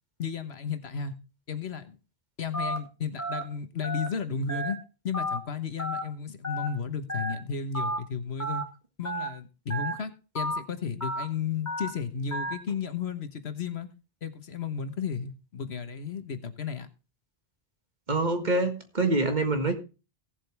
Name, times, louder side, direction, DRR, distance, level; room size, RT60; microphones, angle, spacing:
voice 1, 0.2-1.1 1.5-2.0 2.4-4.8 5.0-8.6 9.0-13.9 14.2-16.9, left 6 dB, 80° left, 10 dB, 1.5 m, -33 dB
Telephone, 2.5-2.8 3.2-3.4 3.8-4.1 4.5-4.7 5.1-5.4 5.8-6.0 6.4-6.7 7.1-7.3 7.7-8.0 8.4-8.6 9.0-9.3 9.7-9.9 10.3-10.6 11.0-11.2 11.7-11.9 12.3-12.5, equal, 15° left, 2.0 m, -31 dB
voice 2, 18.1-19.7, right 2 dB, 45° right, 6 dB, 1.9 m, -25 dB
17.0 x 7.6 x 3.4 m, 0.31 s
omnidirectional pair, 1.1 m